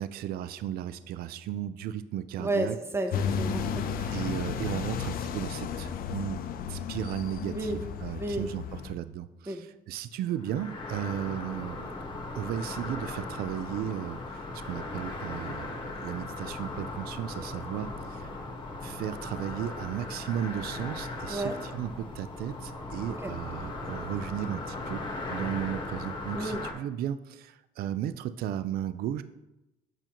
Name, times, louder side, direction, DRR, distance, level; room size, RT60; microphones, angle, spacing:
voice 1, 0.0-2.8 4.1-6.4 6.7-11.9 12.3-18.4 18.8-29.2, right 10 dB, 65° right, 13 dB, 0.4 m, -35 dB
voice 2, 2.4-4.2 7.5-7.8 8.2-8.5 9.5-9.6 21.3-21.6 23.1-23.3 26.3-26.6, right 1 dB, 15° right, 6 dB, 0.8 m, -32 dB
sound 1, 3.1-8.9, left 7 dB, 60° left, 0.5 m, -33 dB
sound 2, 10.4-26.7, left 2 dB, 30° left, 1.3 m, -38 dB
6.7 x 6.0 x 3.0 m, 0.93 s
cardioid pair, 95°, 17 cm